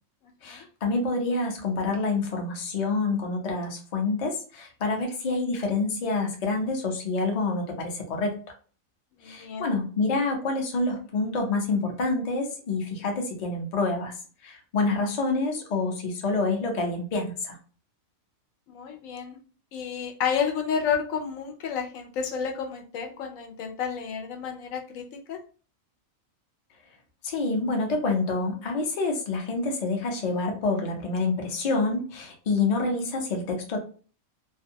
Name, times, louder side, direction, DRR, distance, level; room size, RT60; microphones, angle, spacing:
voice 1, 0.4-8.4 9.2-14.1 14.4-17.6 27.2-33.8, left 3 dB, 40° left, 1 dB, 0.6 m, -27 dB
voice 2, 9.2-9.7 18.7-19.4 19.7-25.0 25.3-25.4, left 7 dB, 75° left, 3 dB, 1.0 m, -30 dB
2.5 x 2.2 x 2.7 m, 0.39 s
omnidirectional pair, 1.4 m